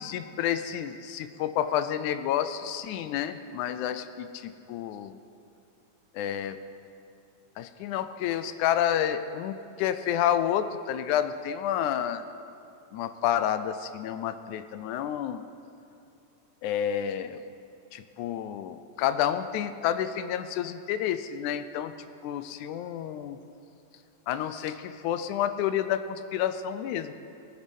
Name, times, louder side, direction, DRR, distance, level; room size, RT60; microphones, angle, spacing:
voice 1, 0.0-5.2 6.1-6.6 7.6-12.2 12.9-15.4 16.6-17.4 17.9-21.9 22.2-23.4 24.3-27.1, left 10 dB, 80° left, 11 dB, 2.0 m, -29 dB
18.5 x 9.5 x 5.4 m, 2.7 s
omnidirectional pair, 3.5 m